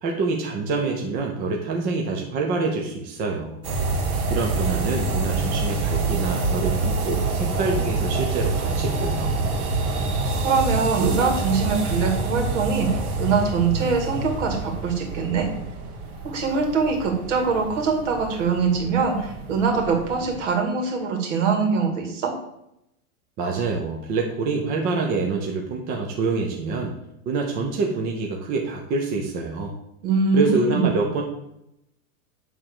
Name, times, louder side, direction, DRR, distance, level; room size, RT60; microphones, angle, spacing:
voice 1, 0.0-3.6 4.3-9.3 23.4-26.9 27.3-29.7 30.3-31.2, right 4 dB, 20° right, 0 dB, 0.7 m, -26 dB
sound 1, 3.6-20.4, right 3 dB, 80° right, 1.9 m, -27 dB
voice 2, 10.4-15.5 16.2-22.3 30.0-30.9, right 5 dB, 55° right, 3 dB, 2.3 m, -23 dB
8.7 x 3.7 x 6.7 m, 0.82 s
supercardioid pair, 155°, 43 cm